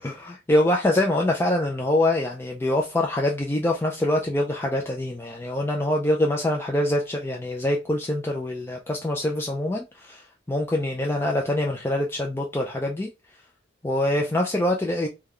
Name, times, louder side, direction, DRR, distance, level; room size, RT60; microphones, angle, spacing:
voice 1, 0.0-13.1 13.8-15.1, left 1 dB, 10° left, 0.3 m, -24 dB
3.3 x 2.2 x 3.6 m
head